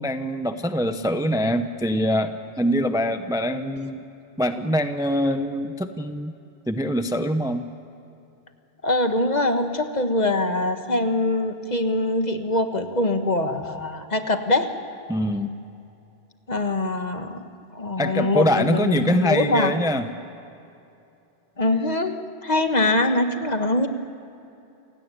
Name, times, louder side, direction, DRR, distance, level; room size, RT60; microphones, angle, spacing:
voice 1, 0.0-4.0 4.4-6.3 6.7-7.6 15.1-15.5 18.0-20.0, equal, 5° right, 8 dB, 0.7 m, -24 dB
voice 2, 8.8-14.7 16.5-17.4 17.7-19.7 21.6-22.1 22.4-23.9, left 2 dB, 40° left, 7 dB, 1.5 m, -23 dB
28.5 x 17.0 x 9.8 m, 2.7 s
omnidirectional pair, 1.1 m